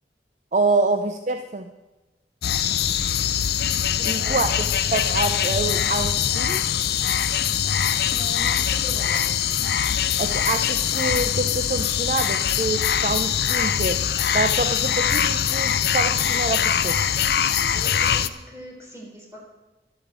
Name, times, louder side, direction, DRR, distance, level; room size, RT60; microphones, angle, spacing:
voice 1, 0.5-1.7 4.0-4.6 4.9-6.7 10.2-17.0, right 3 dB, 40° right, 7 dB, 0.5 m, -26 dB
sound 1, 2.4-18.3, left 9 dB, 65° left, 0.5 m, -23 dB
voice 2, 4.0-4.6 8.1-9.3 17.7-19.4, right 1 dB, 15° right, -3 dB, 4.1 m, -40 dB
12.0 x 8.7 x 8.1 m, 1.1 s
head